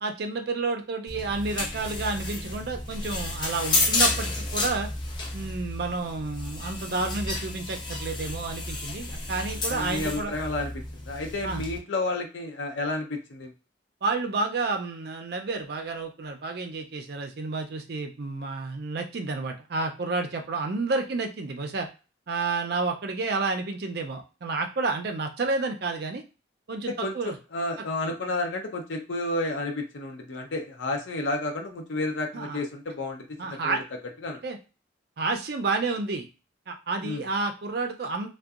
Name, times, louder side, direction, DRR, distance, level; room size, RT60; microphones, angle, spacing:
voice 1, 0.0-4.9 5.3-10.4 11.4-11.6 14.0-21.9 22.3-26.2 26.7-27.4 28.0-28.1 32.3-32.6 33.4-33.8 34.4-34.6 35.2-36.3 36.7-38.3, right 3 dB, 55° right, 4 dB, 0.4 m, -30 dB
sound 1, 1.1-11.8, left 2 dB, 25° left, 0.4 m, -31 dB
voice 2, 9.7-13.5 27.0-33.8 34.2-34.4 37.0-37.2, left 2 dB, 80° left, 2 dB, 0.6 m, -31 dB
2.6 x 2.2 x 2.4 m, 0.32 s
head